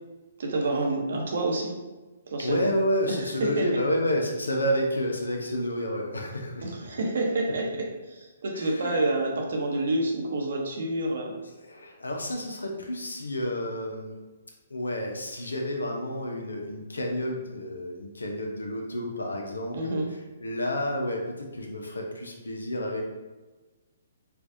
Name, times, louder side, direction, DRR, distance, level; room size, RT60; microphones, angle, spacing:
voice 1, 0.4-1.8 2.3-2.7 3.1-3.7 6.6-11.4 19.7-20.1, right 2 dB, 65° right, 0 dB, 0.8 m, -28 dB
voice 2, 2.4-6.9 8.5-8.9 11.6-14.1 14.7-20.0 20.4-23.0, equal, 90° left, 1 dB, 0.7 m, -30 dB
4.5 x 2.4 x 2.6 m, 1.2 s
hypercardioid pair, 135°, 0 cm